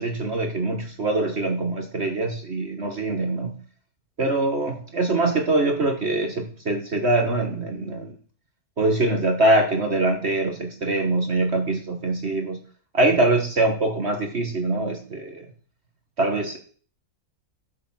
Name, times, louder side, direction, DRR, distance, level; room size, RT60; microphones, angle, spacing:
voice 1, 0.0-3.6 4.2-8.1 8.8-12.6 12.9-15.5 16.2-16.6, right 2 dB, 45° right, 4 dB, 1.8 m, -23 dB
11.5 x 6.9 x 7.4 m, 0.43 s
omnidirectional pair, 1.6 m